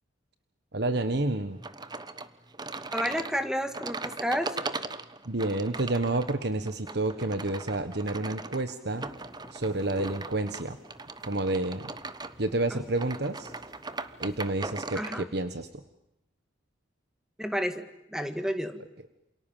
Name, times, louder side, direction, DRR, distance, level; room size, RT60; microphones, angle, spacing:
voice 1, 0.7-1.6 5.2-9.1 9.5-10.8 11.2-11.9 12.4-13.5 14.2-15.7, right 2 dB, 60° right, 9 dB, 1.4 m, -29 dB
sound 1, 1.6-15.2, right 3 dB, 20° right, 1.1 m, -39 dB
voice 2, 2.9-4.6 12.7-12.8 15.0-15.3 17.4-18.8, equal, 5° right, 8 dB, 2.0 m, -31 dB
sound 2, 8.9-14.7, equal, 15° left, 3.8 m, -53 dB
28.5 x 28.0 x 7.5 m, 0.87 s
head